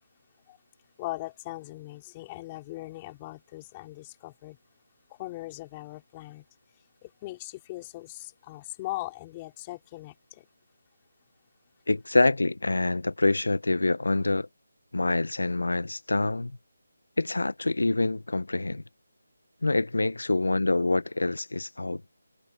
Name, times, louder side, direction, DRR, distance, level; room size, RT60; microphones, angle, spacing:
voice 1, 1.0-4.6 5.1-6.4 7.0-10.5, left 18 dB, 20° left, 4.5 m, -39 dB
voice 2, 11.9-14.5 14.9-16.5 17.2-18.8 19.6-22.1, left 2 dB, 90° left, 1.1 m, -26 dB
figure-of-eight pair, 165°, 0 cm